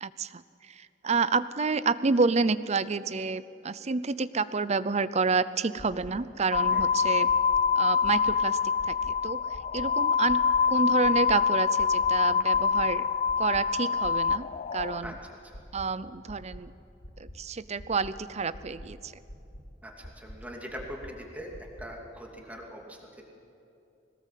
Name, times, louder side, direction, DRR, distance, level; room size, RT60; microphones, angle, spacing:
voice 1, 0.0-7.3 7.8-8.6 8.9-9.4 9.7-13.0 13.4-15.1 15.7-16.7 17.2-19.1, right 4 dB, 35° right, 16 dB, 0.6 m, -29 dB
sound 1, 5.8-6.1 6.5-6.8 7.3-7.6 8.0-8.4 8.8-9.1 9.5-9.9 10.3-10.6 11.0-11.4 11.8-12.1 12.5-12.9 13.3-13.6 14.0-14.4 14.8-15.1 15.5-15.8 16.3-16.6 17.0-17.4 17.8-18.1 18.5-18.9 19.3-19.6 20.0-20.4 20.8-21.1 21.5-21.9, equal, 80° left, 3.9 m, -45 dB
sound 2, 6.5-15.0, left 6 dB, 40° left, 0.4 m, -25 dB
voice 2, 15.0-15.6 19.8-21.5 21.8-23.2, equal, 10° right, 0 dB, 2.8 m, -42 dB
21.5 x 19.0 x 7.5 m, 2.8 s
head